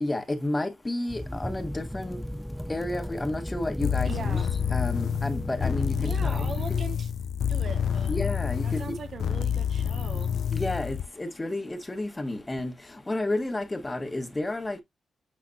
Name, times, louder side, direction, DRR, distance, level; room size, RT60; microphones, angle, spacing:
voice 1, 0.0-2.2 2.7-4.4 4.7-6.5 8.1-8.9 10.5-14.8, left 1 dB, 20° left, 1.4 m, -31 dB
sound 1, 1.1-6.6, equal, ahead, 0.4 m, -36 dB
sound 2, 3.8-11.1, left 8 dB, 75° left, 0.3 m, -28 dB
voice 2, 4.0-4.5 6.0-7.1 7.5-8.2 8.6-10.3, right 5 dB, 55° right, 0.6 m, -40 dB
8.6 x 4.0 x 2.7 m
cardioid pair, 105°, 0 cm